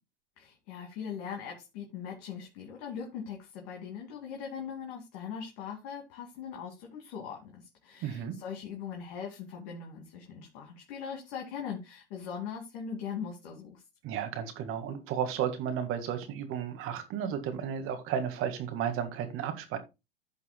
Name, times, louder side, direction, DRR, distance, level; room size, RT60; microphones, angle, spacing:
voice 1, 0.4-13.8, left 7 dB, 55° left, 2.4 m, -40 dB
voice 2, 8.0-8.4 14.0-19.8, right 8 dB, 45° right, 1.9 m, -33 dB
15.5 x 5.5 x 2.3 m
hypercardioid pair, 95°, 29 cm